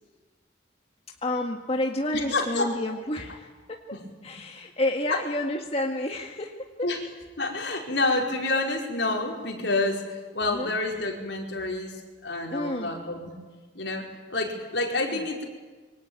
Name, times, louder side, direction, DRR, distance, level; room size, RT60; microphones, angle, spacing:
voice 1, 1.2-3.8 4.2-6.9 10.5-10.7 12.5-13.0 15.1-15.2, left 1 dB, 35° left, 2 dB, 1.9 m, -30 dB
voice 2, 2.1-2.7 3.9-4.0 5.1-5.2 6.8-7.0 7.4-13.3 13.7-15.4, left 2 dB, 70° left, 1 dB, 5.1 m, -28 dB
27.0 x 24.0 x 9.0 m, 1.4 s
head